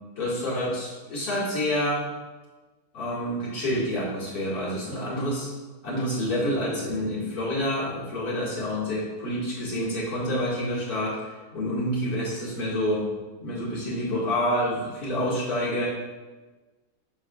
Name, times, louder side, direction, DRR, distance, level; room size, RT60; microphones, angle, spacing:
voice 1, 0.2-2.1 2.9-5.5 5.8-13.1 13.4-15.9, equal, 80° left, -7 dB, 2.6 m, -28 dB
9.0 x 6.7 x 2.4 m, 1.3 s
omnidirectional pair, 1.6 m